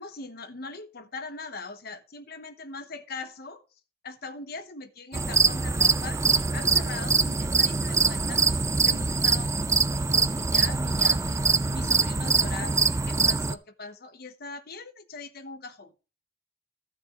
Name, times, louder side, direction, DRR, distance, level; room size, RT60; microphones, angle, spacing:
voice 1, 0.0-8.4 8.8-11.4 11.7-15.9, left 4 dB, 55° left, 1.1 m, -41 dB
sound 1, 5.1-13.5, right 4 dB, 15° right, 0.4 m, -24 dB
15.0 x 6.8 x 3.1 m
head